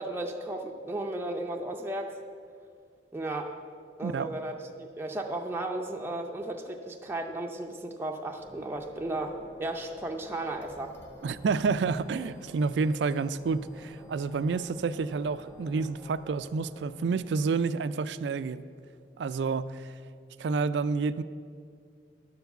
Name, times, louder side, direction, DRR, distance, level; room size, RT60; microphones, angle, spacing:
voice 1, 0.0-2.1 3.1-3.6 4.0-10.9, right 2 dB, 15° right, 1 dB, 0.5 m, -35 dB
sound 1, 8.4-19.0, equal, 15° left, 0.9 m, -51 dB
voice 2, 11.2-18.6 19.2-19.9 20.4-21.2, right 4 dB, 75° right, 15 dB, 0.4 m, -29 dB
11.0 x 4.7 x 7.8 m, 2.2 s
head